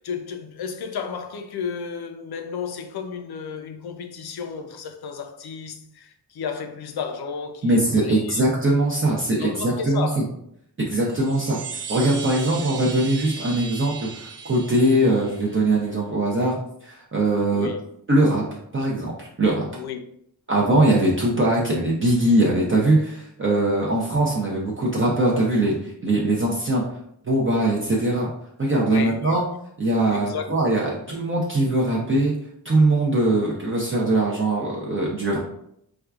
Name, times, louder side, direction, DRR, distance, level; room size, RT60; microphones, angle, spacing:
voice 1, 0.0-8.4 9.1-10.2 17.5-17.8 19.8-20.0 28.9-29.4 30.1-30.4 30.9-31.0, left 6 dB, 65° left, 0.5 m, -33 dB
voice 2, 7.6-10.2 10.8-11.6 11.9-16.6 16.8-17.7 18.1-18.4 18.7-19.7 20.5-26.8 27.2-28.3 28.6-29.4 29.8-32.3 32.6-35.4, right 1 dB, 30° right, 0.5 m, -21 dB
Chime, 11.1-15.7, right 5 dB, 75° right, 0.5 m, -37 dB
4.4 x 2.3 x 2.4 m
wide cardioid pair, 140°, 41 cm